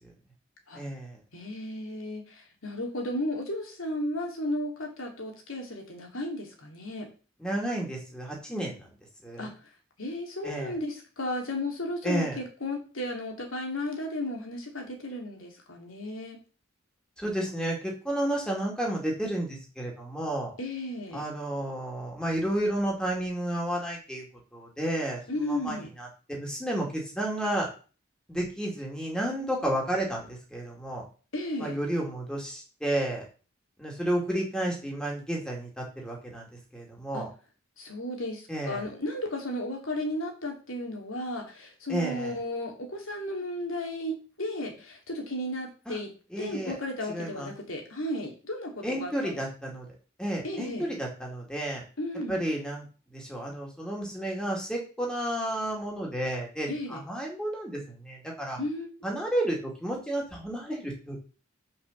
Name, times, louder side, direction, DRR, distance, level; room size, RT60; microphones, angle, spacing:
voice 1, 0.7-1.2 7.4-8.9 9.2-9.5 10.4-10.7 12.0-12.4 17.2-20.5 21.1-24.2 24.5-25.2 25.5-27.7 28.3-31.0 31.6-33.2 33.8-36.5 36.7-37.3 38.5-38.8 41.9-42.4 45.9-46.0 46.3-46.8 47.1-47.5 48.8-49.9 50.2-51.8 52.3-52.9 53.1-58.6 59.0-61.2, right 1 dB, 5° left, -1 dB, 2.7 m, -31 dB
voice 2, 1.3-7.1 9.4-9.5 10.0-16.4 20.6-21.2 25.3-25.9 31.3-31.8 37.1-37.2 37.8-46.1 46.4-49.4 50.4-50.9 52.0-52.4 56.7-57.0 58.6-58.9, left 1 dB, 90° left, 1 dB, 2.7 m, -34 dB
6.5 x 5.5 x 6.9 m, 0.36 s
head